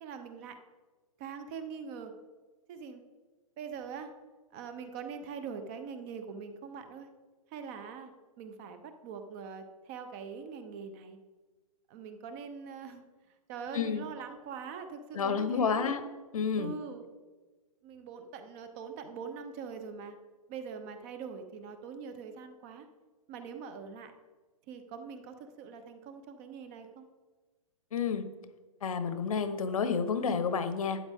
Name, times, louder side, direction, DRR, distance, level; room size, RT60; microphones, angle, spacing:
voice 1, 0.0-0.6 1.2-2.1 2.7-3.0 3.6-4.1 4.5-7.1 7.5-8.1 8.4-11.2 11.9-13.0 13.5-15.9 16.6-17.1 17.8-20.2 20.5-22.9 23.3-24.1 24.7-27.1, right 6 dB, 25° right, 8 dB, 0.7 m, -43 dB
voice 2, 13.7-14.0 15.1-16.0 16.3-16.7 27.9-28.2 28.8-31.0, left 6 dB, 70° left, 10 dB, 1.1 m, -30 dB
12.5 x 9.1 x 3.6 m, 1.3 s
hypercardioid pair, 165°, 18 cm